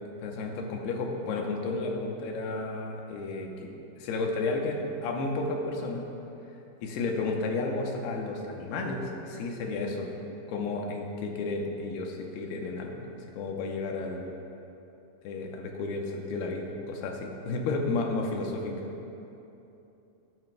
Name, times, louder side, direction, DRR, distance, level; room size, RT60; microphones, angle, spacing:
voice 1, 0.2-3.7 4.0-6.1 6.8-10.1 10.5-14.3 15.2-18.9, left 3 dB, 90° left, 1 dB, 2.9 m, -32 dB
17.5 x 9.3 x 2.3 m, 2.9 s
omnidirectional pair, 4.5 m